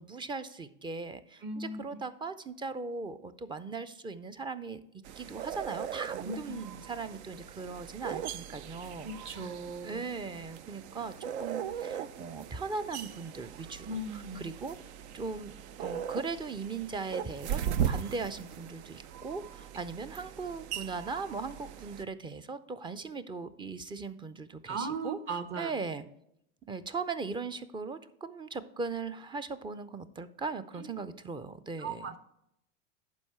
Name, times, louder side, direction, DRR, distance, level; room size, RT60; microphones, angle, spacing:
voice 1, 0.0-4.8 5.2-9.5 9.8-14.8 15.1-26.0 26.7-32.1, right 4 dB, 15° right, 14 dB, 0.4 m, -39 dB
voice 2, 1.4-1.8 6.2-6.3 9.0-10.0 13.8-14.4 24.7-25.7 30.7-30.9 31.8-32.2, right 3 dB, 35° right, 10 dB, 1.1 m, -37 dB
sound 1, 5.0-22.0, right 9 dB, 70° right, 0.6 m, -39 dB
11.5 x 4.7 x 4.4 m, 0.77 s
hypercardioid pair, 95°, 35 cm